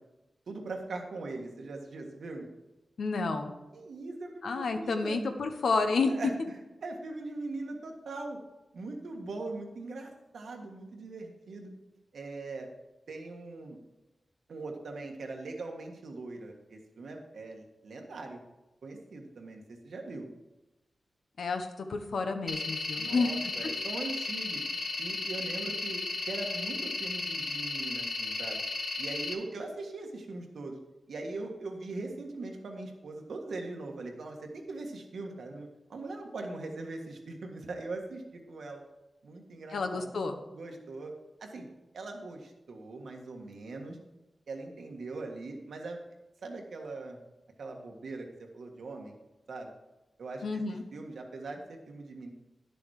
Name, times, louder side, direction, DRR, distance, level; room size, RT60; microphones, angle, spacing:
voice 1, 0.5-2.5 3.7-5.2 6.1-6.3 6.8-8.4 8.7-11.7 12.1-12.7 13.1-13.8 14.5-18.4 18.8-20.3 22.9-24.6 25.0-28.6 29.0-30.8 31.1-38.8 39.2-40.1 40.5-41.1 41.4-41.7 41.9-44.0 44.5-46.0 46.4-47.2 47.6-48.3 48.5-49.1 49.5-49.7 50.2-50.6 50.9-52.3, right 3 dB, 85° right, 2 dB, 1.6 m, -41 dB
voice 2, 3.0-3.5 4.4-6.1 21.4-23.3 39.7-40.4 50.4-50.8, left 4 dB, 85° left, 6 dB, 1.0 m, -30 dB
sound 1, 22.5-29.3, left 3 dB, 60° left, 1.2 m, -34 dB
10.5 x 7.0 x 4.9 m, 1.0 s
wide cardioid pair, 115°, 0 cm